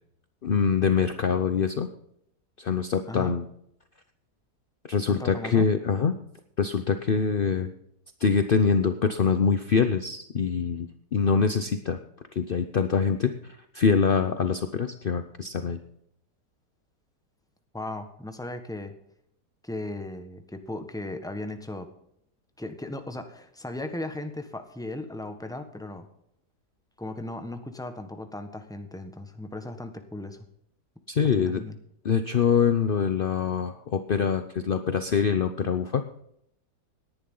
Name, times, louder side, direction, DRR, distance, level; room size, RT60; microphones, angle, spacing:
voice 1, 0.4-1.9 2.6-3.5 4.9-6.1 6.6-7.7 8.2-12.0 12.3-15.8 31.1-31.6 32.0-36.0, left 6 dB, 55° left, 9 dB, 0.6 m, -24 dB
voice 2, 5.0-5.7 17.7-18.9 19.6-21.9 22.6-26.1 27.0-30.4 31.4-31.8, left 2 dB, ahead, 7 dB, 1.2 m, -37 dB
18.0 x 11.0 x 3.9 m, 0.73 s
omnidirectional pair, 1.9 m